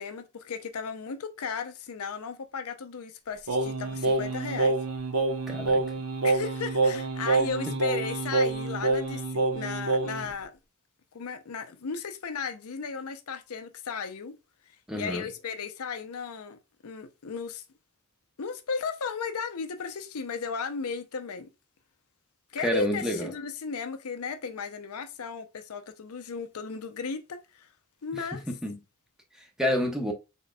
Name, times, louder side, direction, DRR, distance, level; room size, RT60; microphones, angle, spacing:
voice 1, 0.0-4.8 6.2-10.5 11.1-14.4 14.9-17.6 18.4-21.5 22.5-27.7 28.0-28.5, left 5 dB, 80° left, 0.6 m, -35 dB
Singing, 3.5-10.3, right 3 dB, 80° right, 0.9 m, -27 dB
voice 2, 5.5-5.8 7.7-7.8 14.9-15.3 22.6-23.3 28.1-28.8 29.6-30.1, equal, 5° right, 0.7 m, -29 dB
4.1 x 3.7 x 2.2 m
head